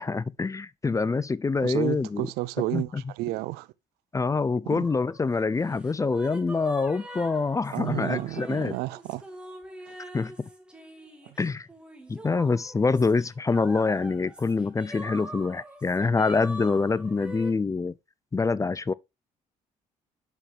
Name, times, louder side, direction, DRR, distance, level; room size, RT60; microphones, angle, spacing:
voice 1, 0.0-2.3 2.7-3.0 4.1-8.7 10.1-10.3 11.4-11.7 12.1-17.9 18.3-18.9, left 4 dB, 20° left, 0.4 m, -25 dB
voice 2, 1.6-3.7 4.7-4.8 7.7-9.2 9.9-10.0, right 18 dB, 80° right, 0.5 m, -31 dB
sound 1, 4.8-17.5, right 1 dB, 5° right, 2.1 m, -44 dB
8.2 x 5.7 x 3.4 m
supercardioid pair, 65°, 16 cm